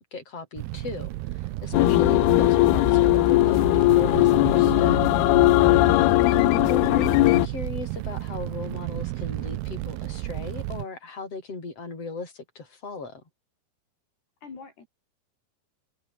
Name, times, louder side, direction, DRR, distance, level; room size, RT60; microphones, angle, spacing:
voice 1, 0.1-3.6 4.0-5.0 6.6-13.2, left 4 dB, 30° left, 8.6 m, -37 dB
Fire, 0.6-10.9, right 18 dB, 80° right, 2.6 m, -32 dB
sound 1, 1.7-7.5, left 20 dB, 80° left, 2.4 m, -19 dB
voice 2, 14.4-14.9, left 5 dB, 65° left, 8.1 m, -46 dB
omnidirectional pair, 5.1 m